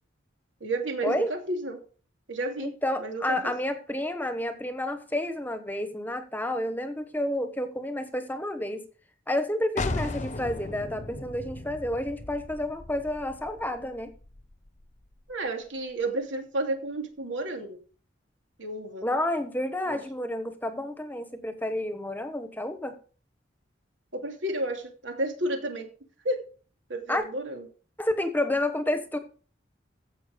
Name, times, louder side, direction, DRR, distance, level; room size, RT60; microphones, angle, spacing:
voice 1, 0.6-1.8 2.3-2.7 3.0-3.5 15.3-17.8 18.6-19.1 19.9-20.0 24.1-25.9 26.2-26.4 26.9-27.7, right 1 dB, 80° right, 4 dB, 2.8 m, -31 dB
voice 2, 2.6-8.9 9.3-14.1 19.0-23.0 27.1-27.2 28.0-29.2, left 1 dB, 10° left, 8 dB, 1.2 m, -30 dB
sound 1, 9.8-15.3, left 2 dB, 40° left, 0.9 m, -37 dB
15.5 x 6.0 x 5.1 m, 0.40 s
head